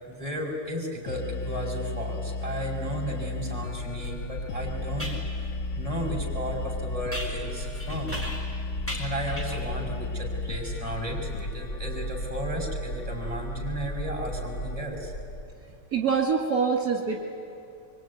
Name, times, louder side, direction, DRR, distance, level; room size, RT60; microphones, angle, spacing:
voice 1, 0.1-5.1 5.8-8.2 9.0-15.1, right 1 dB, 20° right, -2 dB, 5.6 m, -34 dB
sound 1, 1.1-14.8, left 3 dB, 60° left, 1.1 m, -34 dB
sound 2, 4.0-4.1 5.0-5.3 7.1-8.6 8.9-9.7, equal, 10° left, 4.4 m, -37 dB
sound 3, 7.6-15.4, equal, 75° left, 1.7 m, -39 dB
voice 2, 15.9-17.2, right 5 dB, 70° right, 1 dB, 2.4 m, -25 dB
25.0 x 24.0 x 9.4 m, 2.8 s
omnidirectional pair, 1.6 m